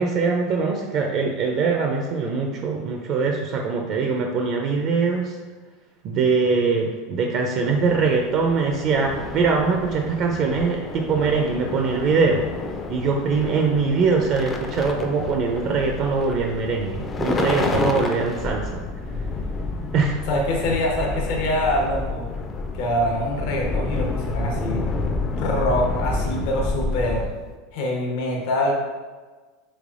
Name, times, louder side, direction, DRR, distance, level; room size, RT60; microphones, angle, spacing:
voice 1, 0.0-5.4 6.0-12.5 12.9-18.8 19.9-20.2, right 4 dB, 50° right, 1 dB, 0.4 m, -22 dB
sound 1, 7.7-27.5, left 3 dB, 25° left, 0.4 m, -29 dB
voice 2, 20.3-22.3 22.7-24.8 25.3-27.3 27.7-28.7, left 1 dB, 65° left, -1 dB, 0.8 m, -24 dB
3.2 x 3.2 x 2.5 m, 1.3 s
hypercardioid pair, 105°, 0 cm